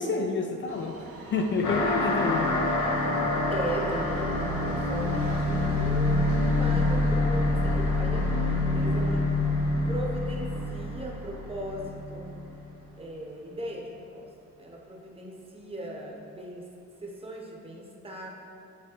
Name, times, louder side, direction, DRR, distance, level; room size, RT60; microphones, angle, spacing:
voice 1, 0.0-2.6, left 4 dB, 40° left, 4 dB, 0.4 m, -29 dB
Subway metro underground, 0.7-14.8 15.1-15.2 16.0-16.1 16.4-16.5 17.1-17.2, right 3 dB, 50° right, 0.7 m, -44 dB
sound 1, 1.6-12.6, left 2 dB, 75° left, 1.0 m, -26 dB
voice 2, 3.5-9.3 9.8-12.3 13.0-14.3 14.6-16.7 17.0-18.3, right 1 dB, 20° right, -1 dB, 0.9 m, -37 dB
9.0 x 3.4 x 3.0 m, 2.6 s
cardioid pair, 90°, 30 cm